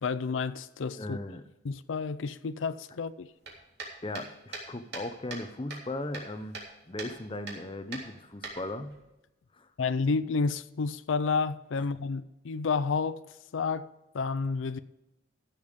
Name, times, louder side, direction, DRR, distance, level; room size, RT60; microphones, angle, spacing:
voice 1, 0.0-1.2 1.6-3.3 9.8-13.2 13.5-13.9 14.1-14.8, left 4 dB, 90° left, 0.5 m, -30 dB
voice 2, 1.0-1.4 4.0-6.6 6.9-8.9 9.5-9.7 11.8-11.9, left 1 dB, 25° left, 0.8 m, -37 dB
sound 1, 3.4-5.5 5.7-6.7 7.0-7.1 7.5-7.6 7.9-9.0, right 3 dB, 60° right, 3.3 m, -41 dB
14.5 x 7.1 x 5.2 m
head